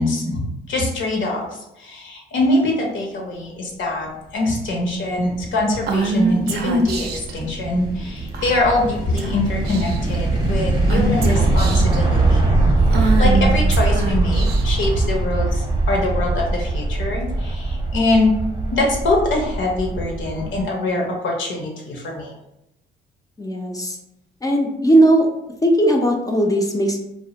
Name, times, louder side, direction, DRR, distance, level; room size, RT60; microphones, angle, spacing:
voice 1, 0.0-1.5 1.8-12.5 13.0-18.3 18.7-22.3, left 2 dB, 70° left, 0 dB, 0.7 m, -23 dB
sound 1, 5.1-20.6, right 2 dB, 20° right, 0.7 m, -21 dB
Female speech woman speaking / Whispering, 5.9-7.3 8.3-8.8 9.2-9.3 9.6-10.2 10.9-12.0 12.9-14.9, right 4 dB, 55° right, 0.4 m, -24 dB
voice 2, 23.4-24.0 24.4-25.3 25.6-27.0, right 1 dB, 20° left, 1 dB, 0.4 m, -17 dB
2.3 x 2.0 x 2.8 m, 0.87 s
cardioid pair, 90°, 20 cm